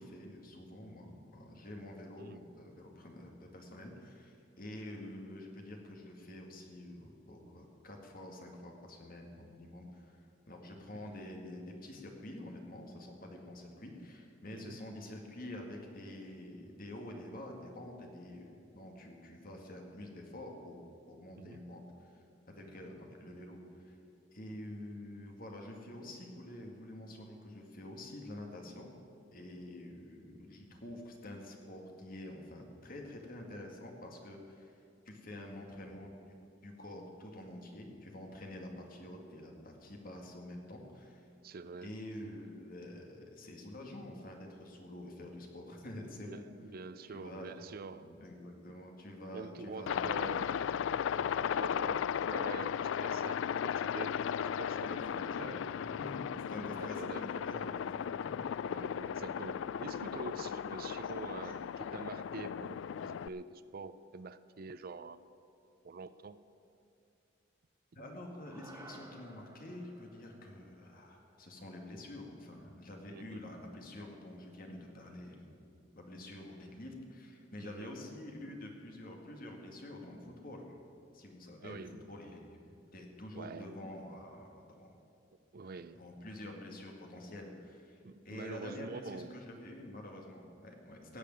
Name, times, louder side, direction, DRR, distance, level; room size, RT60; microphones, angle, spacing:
voice 1, 0.0-20.8 21.1-22.1 22.5-24.0 24.3-28.9 29.3-34.8 35.1-36.3 36.6-41.3 41.8-46.5 47.1-50.1 54.6-56.2 56.5-58.4 58.6-58.9 61.4-61.5 67.9-75.6 75.9-80.8 81.1-84.9 85.6-91.2, left 1 dB, 45° left, 2 dB, 2.0 m, -48 dB
voice 2, 41.4-41.9 46.2-48.1 49.3-50.5 51.1-55.0 55.4-55.6 56.6-57.2 58.7-65.2 65.8-66.4 73.1-73.5 77.7-77.9 81.6-82.0 83.3-83.7 85.5-86.0 88.0-89.4 91.1-91.2, right 4 dB, 50° right, 14 dB, 0.4 m, -46 dB
Aircraft, 49.9-63.3, left 8 dB, 75° left, 0.3 m, -36 dB
sound 1, 68.5-72.9, right 2 dB, 15° right, 1.0 m, -57 dB
17.5 x 6.7 x 9.1 m, 2.5 s
head